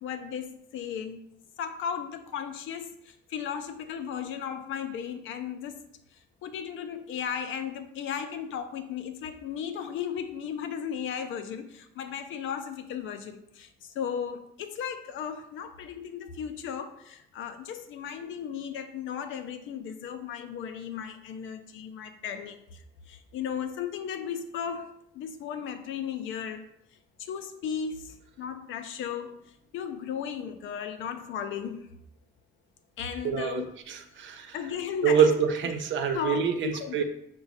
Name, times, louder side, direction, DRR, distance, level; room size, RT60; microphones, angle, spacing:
voice 1, 0.0-1.2 1.6-5.8 6.4-22.8 23.1-26.6 27.3-29.4 29.7-31.8 33.0-33.7 34.5-35.3 36.1-37.0, left 8 dB, 80° left, 8 dB, 0.5 m, -35 dB
voice 2, 33.2-34.6 35.0-37.0, right 7 dB, 70° right, 5 dB, 0.7 m, -26 dB
5.9 x 2.2 x 4.0 m, 0.74 s
cardioid pair, 90°, 20 cm